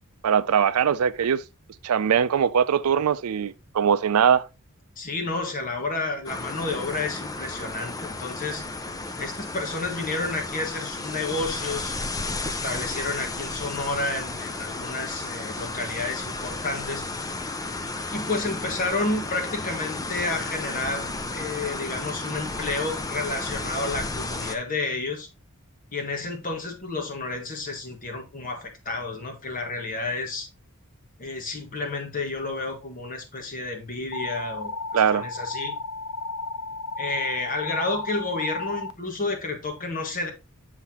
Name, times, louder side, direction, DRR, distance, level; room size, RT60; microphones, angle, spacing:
voice 1, 0.2-1.4 1.8-4.5 34.9-35.2, right 7 dB, 75° right, 0.4 m, -21 dB
voice 2, 5.0-8.6 9.2-12.0 12.4-17.1 18.1-25.3 25.9-30.5 31.2-35.7 37.0-40.3, left 3 dB, 40° left, 1.7 m, -30 dB
sound 1, 6.3-24.6, left 2 dB, 15° left, 0.6 m, -33 dB
sound 2, 34.1-38.9, left 3 dB, 60° left, 0.6 m, -33 dB
7.1 x 5.8 x 2.9 m
head